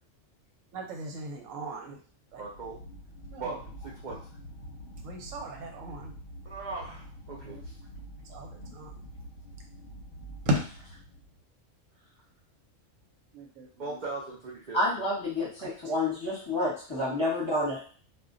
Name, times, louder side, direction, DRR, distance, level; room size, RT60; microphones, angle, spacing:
voice 1, 0.7-2.0 2.3-2.4 3.3-3.4 5.0-6.1 7.4-7.6 8.3-8.9 10.5-10.6 13.3-14.0 15.6-15.7, right 1 dB, 85° right, 2 dB, 1.0 m, -35 dB
sound 1, 2.3-11.4, equal, 60° left, 0.7 m, -46 dB
voice 2, 2.4-2.8 3.4-4.3 6.4-7.8 12.0-12.1 13.8-14.8, right 3 dB, 60° right, -3 dB, 0.5 m, -39 dB
voice 3, 14.7-17.8, left 1 dB, 25° left, -6 dB, 0.9 m, -29 dB
2.3 x 2.1 x 3.7 m, 0.42 s
omnidirectional pair, 1.3 m